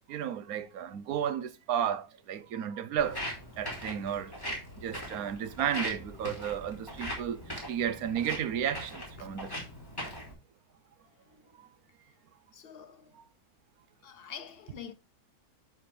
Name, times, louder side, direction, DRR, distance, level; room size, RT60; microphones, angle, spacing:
voice 1, 0.1-3.2 3.6-4.3 4.8-9.5 11.6-11.7, right 9 dB, 85° right, 1.2 m, -33 dB
Walk footsteps, 3.0-10.3, equal, 15° left, 3.1 m, -40 dB
voice 2, 12.5-13.2 14.0-14.9, left 8 dB, 50° left, 0.9 m, -46 dB
11.5 x 4.3 x 3.3 m
omnidirectional pair, 1.5 m